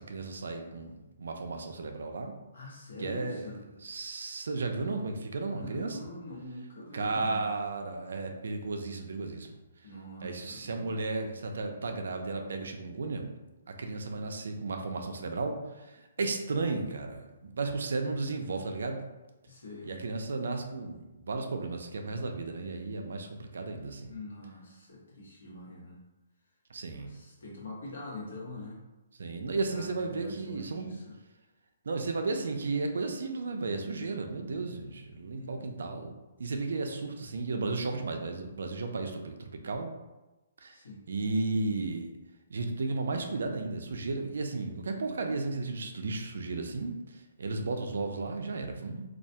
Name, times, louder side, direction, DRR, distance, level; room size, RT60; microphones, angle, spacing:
voice 1, 0.0-2.3 3.0-3.5 3.8-6.0 6.9-9.5 10.2-13.3 13.7-15.6 15.9-19.0 19.8-24.1 26.7-27.1 29.2-31.0 31.9-36.1 36.4-39.9 40.6-40.8 41.1-42.1 42.5-47.0 47.4-49.0, right 3 dB, 70° right, 4 dB, 0.4 m, -34 dB
voice 2, 2.5-3.6 5.5-7.5 9.8-10.9 16.2-16.4 19.4-19.9 24.1-26.0 26.9-28.8 29.5-31.1 35.3-35.9 40.7-41.1, left 1 dB, 80° left, -4 dB, 0.9 m, -44 dB
2.3 x 2.1 x 2.7 m, 1.1 s
hypercardioid pair, 175°, 0 cm